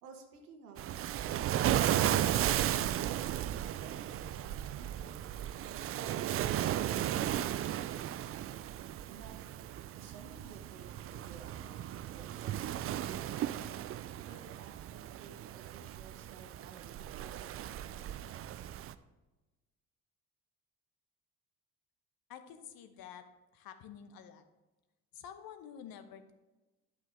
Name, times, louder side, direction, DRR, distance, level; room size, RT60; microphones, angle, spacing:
voice 1, 0.0-5.2 5.7-8.7 9.1-9.4 10.0-13.9 14.2-18.7, right 6 dB, 85° right, 4 dB, 1.2 m, -54 dB
Waves surf, 0.8-18.9, right 12 dB, 35° right, 0.4 m, -35 dB
voice 2, 22.3-23.2 23.5-24.4 25.1-26.3, left 8 dB, 50° left, 10 dB, 0.9 m, -49 dB
11.5 x 5.7 x 3.3 m, 1.1 s
hypercardioid pair, 55°, 44 cm